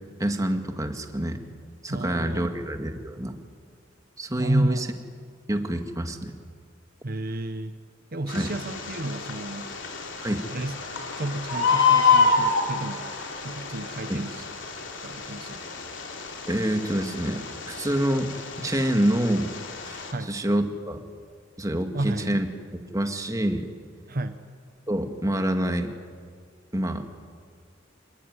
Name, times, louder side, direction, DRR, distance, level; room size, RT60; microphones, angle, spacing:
voice 1, 0.2-1.4 1.8-3.4 4.2-4.9 5.5-6.3 8.3-8.5 10.2-10.5 14.1-14.2 16.5-19.5 19.8-20.0 20.3-21.0 21.6-22.5 22.7-23.7 24.9-25.9 26.7-27.1, right 1 dB, 15° right, 6 dB, 2.1 m, -27 dB
voice 2, 1.9-2.6 4.4-4.8 7.0-7.7 8.1-9.7 10.5-13.1 13.4-14.4 15.0-15.6 20.1-20.4 21.9-22.4 24.1-24.4, right 1 dB, 50° right, 9 dB, 1.1 m, -31 dB
Bird, 8.3-20.1, left 5 dB, 65° left, 3.4 m, -28 dB
27.5 x 20.5 x 9.8 m, 2.1 s
head